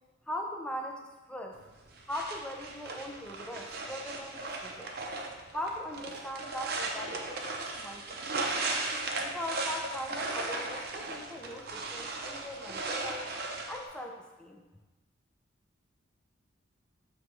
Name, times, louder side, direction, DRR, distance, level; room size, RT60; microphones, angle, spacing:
voice 1, 0.3-1.6 2.1-4.9 5.5-8.2 9.2-13.3 13.7-14.6, equal, 5° left, 2 dB, 0.5 m, -40 dB
sound 1, 1.5-13.8, right 3 dB, 50° right, 0.6 m, -37 dB
6.3 x 3.2 x 4.7 m, 1.2 s
head